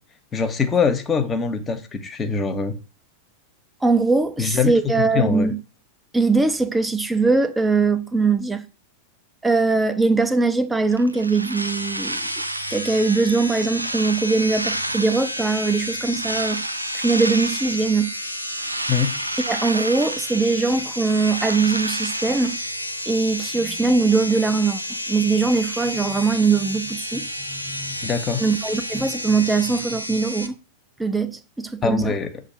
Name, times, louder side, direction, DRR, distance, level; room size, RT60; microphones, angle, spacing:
voice 1, 0.3-2.8 4.4-5.5 18.9-19.2 28.0-28.4 31.8-32.3, left 5 dB, 20° left, 1.0 m, -23 dB
voice 2, 3.8-5.6 6.1-8.6 9.4-12.2 12.7-16.6 16.9-18.1 19.4-22.6 23.1-24.8 25.1-28.0 28.4-30.5 31.0-32.1, right 4 dB, 10° right, 0.7 m, -21 dB
sound 1, 10.9-12.9 13.4-15.5 16.1-17.9 18.3-20.5 20.8-22.7, right 2 dB, 85° right, 0.4 m, -31 dB
sound 2, 11.5-30.5, equal, 90° left, 0.8 m, -31 dB
7.0 x 2.7 x 5.6 m
figure-of-eight pair, 90°, 0 cm